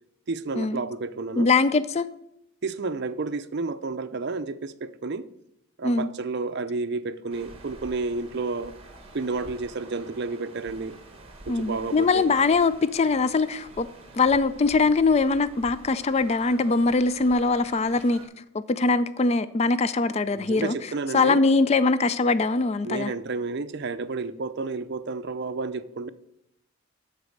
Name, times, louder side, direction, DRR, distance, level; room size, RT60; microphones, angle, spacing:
voice 1, 0.3-1.5 2.6-5.2 5.8-8.8 9.1-11.0 11.5-12.3 20.3-21.4 22.8-26.1, right 3 dB, 50° right, 0.5 m, -31 dB
voice 2, 1.4-2.1 5.8-6.1 11.5-13.9 14.1-18.2 18.5-20.8 21.1-23.1, left 3 dB, 30° left, 0.3 m, -22 dB
sound 1, 7.3-18.3, right 2 dB, 25° right, 1.3 m, -48 dB
12.0 x 4.1 x 6.4 m
head